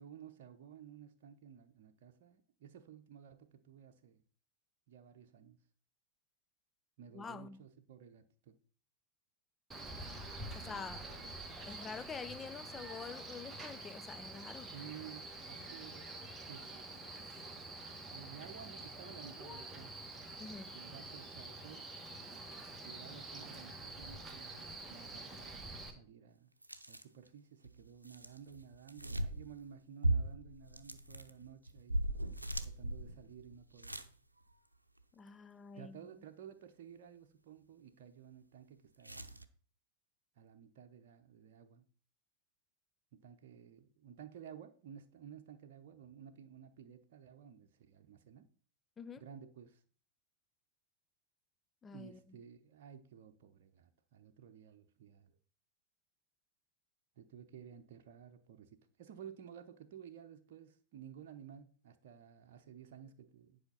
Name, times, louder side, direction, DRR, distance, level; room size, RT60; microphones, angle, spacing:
voice 1, 0.0-4.2 4.9-5.6 7.0-8.6 10.5-11.3 14.6-16.1 16.5-16.9 18.1-20.1 20.7-21.9 22.8-26.5 26.9-32.0 32.6-34.0 35.8-39.5 40.4-41.8 43.1-48.5 49.2-49.8 51.9-55.4 57.2-63.6, right 8 dB, 50° right, 0.8 m, -54 dB
voice 2, 7.1-7.6 10.6-11.1 11.7-14.7 20.4-20.8 35.1-36.1 49.0-49.2 51.8-52.4, left 5 dB, 20° left, 0.5 m, -47 dB
Male speech man speaking, 9.7-25.9, right 2 dB, 10° right, 1.5 m, -47 dB
sound 1, 26.6-27.3 27.6-29.7 30.0-34.1 34.5-34.6 39.0-39.4, right 1 dB, 85° right, 0.6 m, -38 dB
10.5 x 5.0 x 5.6 m
figure-of-eight pair, 90°, 0 cm